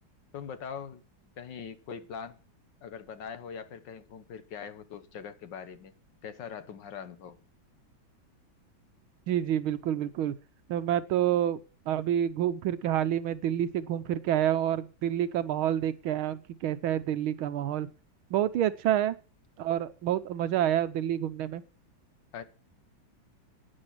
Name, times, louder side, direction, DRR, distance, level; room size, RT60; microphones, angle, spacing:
voice 1, 0.3-1.0 1.4-2.4 2.8-5.9 6.2-7.4 22.3-22.4, left 7 dB, 65° left, 1.7 m, -42 dB
voice 2, 9.3-10.3 10.7-11.6 11.9-17.9 18.3-19.2 19.6-21.6, right 11 dB, 85° right, 1.7 m, -28 dB
12.0 x 9.7 x 5.8 m
omnidirectional pair, 2.2 m